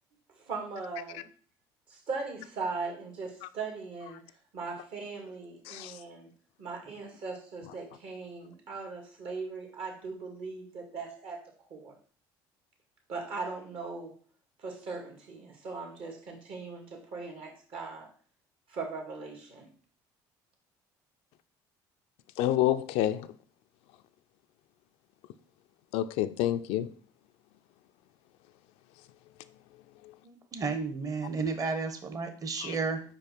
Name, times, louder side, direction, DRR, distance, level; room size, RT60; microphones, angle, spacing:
voice 1, 0.4-1.3 1.9-4.2 4.5-6.3 6.6-11.4 11.7-11.9 13.1-14.2 14.6-18.1 18.7-19.7, right 4 dB, 60° right, 2.3 m, -39 dB
voice 2, 22.4-23.2 25.9-26.9 32.6-32.7, left 12 dB, 80° left, 0.4 m, -28 dB
voice 3, 30.2-33.0, right 4 dB, 35° right, 1.2 m, -32 dB
5.3 x 4.8 x 4.5 m
supercardioid pair, 85°, 10 cm